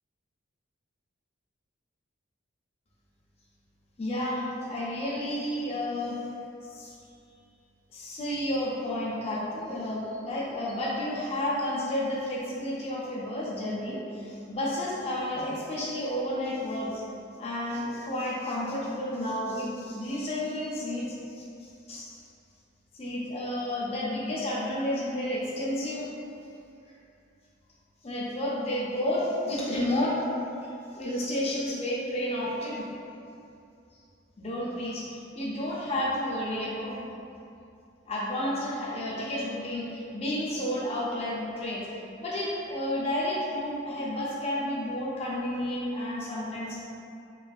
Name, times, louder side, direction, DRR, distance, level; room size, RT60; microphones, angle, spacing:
voice 1, 4.0-4.4 4.7-6.2 6.7-7.0 7.9-17.0 17.4-22.2 22.9-26.1 28.0-30.2 30.6-32.9 34.4-35.1 35.4-36.9 38.1-41.9 42.2-46.8, left 1 dB, 30° left, -6 dB, 0.4 m, -31 dB
3.0 x 2.5 x 2.3 m, 2.6 s
head